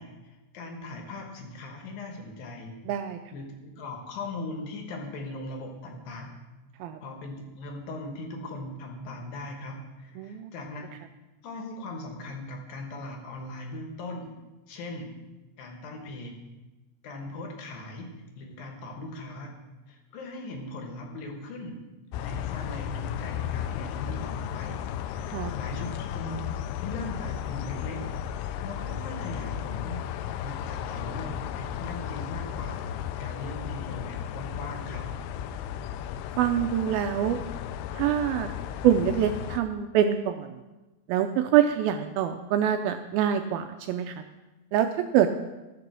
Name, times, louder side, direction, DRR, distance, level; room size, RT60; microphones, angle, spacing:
voice 1, 0.0-2.7 3.3-6.3 7.0-10.8 11.4-14.3 14.7-15.1 15.6-16.3 17.0-18.1 18.3-19.5 19.9-21.8 22.2-24.9 25.2-26.5 26.8-28.1 28.4-35.1, left 2 dB, 65° left, 2 dB, 2.9 m, -39 dB
voice 2, 2.9-3.2 6.8-7.0 10.2-10.5 25.3-25.5 36.4-37.4 37.9-38.5 38.8-40.5 41.1-44.1 44.7-44.9 45.1-45.3, right 10 dB, 80° right, 7 dB, 2.2 m, -25 dB
sound 1, 22.1-39.6, left 9 dB, 85° left, 2.5 m, -34 dB
13.5 x 6.1 x 6.1 m, 1.1 s
omnidirectional pair, 4.6 m